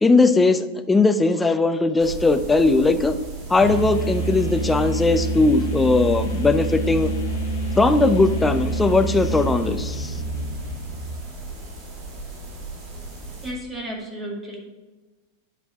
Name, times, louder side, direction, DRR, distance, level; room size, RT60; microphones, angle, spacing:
voice 1, 0.0-3.2 3.5-7.1 7.8-10.2, left 3 dB, 10° left, 9 dB, 0.5 m, -19 dB
sound 1, 2.0-13.5, right 2 dB, 35° right, 1.9 m, -37 dB
sound 2, 3.6-11.3, right 2 dB, 60° left, 1.7 m, -27 dB
voice 2, 13.4-14.6, right 1 dB, 15° right, -1 dB, 2.1 m, -33 dB
8.9 x 5.4 x 3.6 m, 1.2 s
figure-of-eight pair, 90°, 0 cm